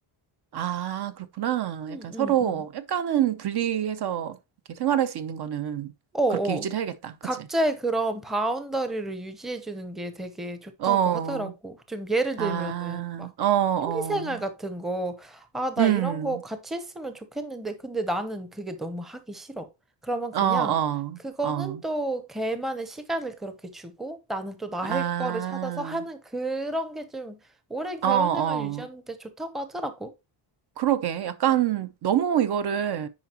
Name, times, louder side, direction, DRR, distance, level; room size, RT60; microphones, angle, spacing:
voice 1, 0.5-4.4 4.7-5.9 6.3-7.2 10.8-11.5 12.4-14.3 15.8-16.4 20.3-21.8 24.8-26.0 28.0-28.9 30.8-33.1, right 10 dB, 50° right, 0.7 m, -26 dB
voice 2, 1.9-2.6 6.1-6.7 7.2-13.3 13.8-19.7 20.0-20.7 21.2-27.4 27.7-30.1, right 2 dB, ahead, 0.7 m, -31 dB
9.6 x 4.9 x 2.9 m
cardioid pair, 145°, 50 cm